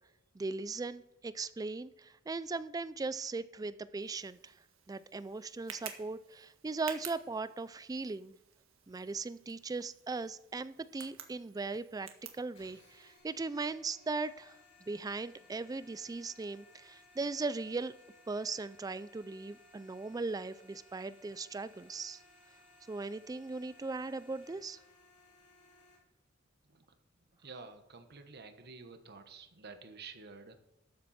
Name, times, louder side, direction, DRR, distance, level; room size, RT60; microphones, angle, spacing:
voice 1, 0.3-4.5 4.9-8.4 8.9-12.1 12.3-17.9 18.3-22.2 22.9-24.8, right 3 dB, 20° right, 15 dB, 0.3 m, -38 dB
Tick, 4.0-13.2, right 8 dB, 85° right, 1.6 m, -52 dB
sound 1, 12.6-26.0, left 2 dB, 35° left, 4.8 m, -62 dB
voice 2, 27.4-30.6, right 4 dB, 55° right, 8 dB, 1.2 m, -50 dB
13.0 x 7.5 x 4.3 m, 0.91 s
head